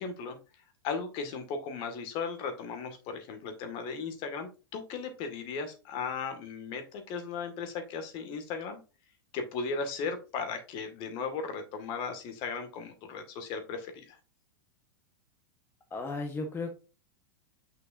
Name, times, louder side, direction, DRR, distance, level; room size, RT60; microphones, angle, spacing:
voice 1, 0.0-8.8 9.3-14.2, left 5 dB, 45° left, 7 dB, 1.9 m, -36 dB
voice 2, 15.9-16.8, left 3 dB, 20° left, 4 dB, 1.2 m, -35 dB
6.2 x 5.9 x 2.6 m, 0.32 s
hypercardioid pair, 105°, 12 cm